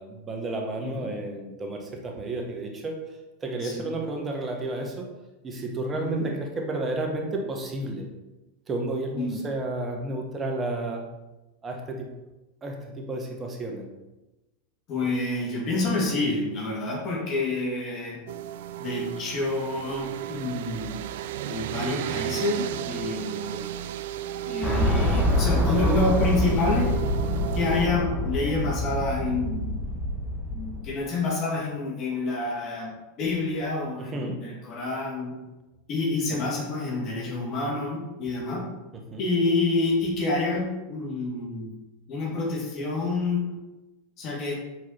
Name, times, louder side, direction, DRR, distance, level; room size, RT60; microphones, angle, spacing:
voice 1, 0.0-3.0 3.4-5.1 5.4-8.1 8.7-11.0 11.6-12.1 12.6-13.8 34.0-34.4 36.3-36.4 39.1-39.2, right 2 dB, 25° right, 2 dB, 1.4 m, -32 dB
voice 2, 5.9-6.3 9.1-9.4 14.9-18.2 18.8-21.0 21.5-23.7 24.5-26.9 27.5-29.8 30.5-35.4 35.9-38.7 39.2-41.7 42.1-43.5 44.2-44.6, left 3 dB, 45° left, -2 dB, 2.2 m, -28 dB
sound 1, 18.3-27.9, right 11 dB, 70° right, 0.3 m, -34 dB
sound 2, 24.6-30.8, left 1 dB, ahead, 1.3 m, -26 dB
6.1 x 4.7 x 4.4 m, 1.0 s
hypercardioid pair, 105°, 0 cm